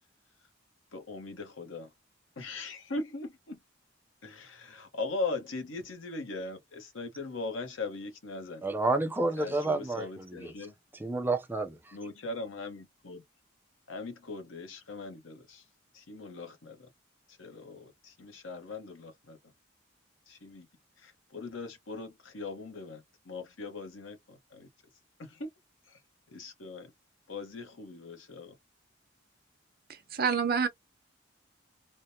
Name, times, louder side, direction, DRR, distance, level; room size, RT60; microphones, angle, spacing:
voice 1, 0.9-1.9 2.4-3.6 4.2-8.6 9.4-10.7 11.9-13.2 13.9-15.7 15.9-16.9 17.3-19.5 20.3-20.7 21.0-24.7 25.2-25.5 25.9-26.0 26.3-26.9 27.3-28.5, left 3 dB, 80° left, 1.0 m, -40 dB
voice 2, 8.6-10.1 10.4-10.5 11.0-11.9, right 2 dB, 10° right, 0.5 m, -29 dB
voice 3, 29.9-30.7, right 6 dB, 50° right, 0.7 m, -28 dB
3.4 x 2.2 x 2.7 m
head